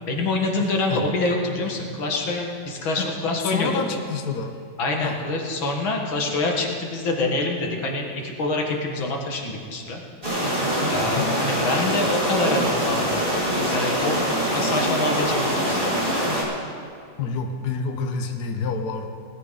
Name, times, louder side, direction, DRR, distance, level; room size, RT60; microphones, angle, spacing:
voice 1, 0.1-3.8 4.8-10.0 10.9-13.2 13.5-14.2 14.5-15.9, left 2 dB, 85° left, 1 dB, 2.4 m, -26 dB
voice 2, 0.6-1.0 3.0-3.1 3.5-4.5 5.0-5.1 11.0-11.3 17.2-19.1, left 5 dB, 60° left, 5 dB, 1.4 m, -28 dB
sound 1, 10.2-16.4, equal, 25° right, 3.5 m, -24 dB
19.5 x 13.0 x 3.9 m, 2.3 s
omnidirectional pair, 2.1 m